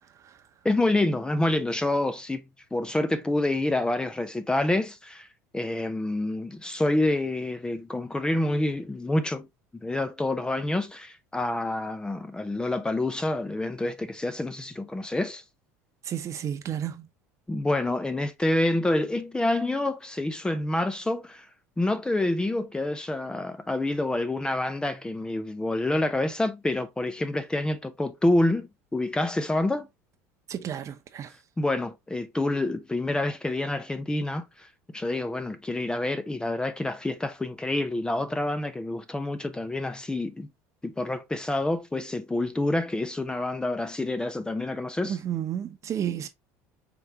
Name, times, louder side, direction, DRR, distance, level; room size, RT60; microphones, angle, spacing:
voice 1, 0.6-2.4 2.7-5.3 5.5-9.5 9.8-15.4 17.5-21.5 21.8-29.9 31.6-40.5 40.8-45.2, left 2 dB, 10° left, 0.6 m, -27 dB
voice 2, 16.1-17.1 30.5-31.3 45.1-46.3, right 10 dB, 45° right, 0.9 m, -31 dB
5.0 x 3.2 x 2.8 m
supercardioid pair, 90°, 7 cm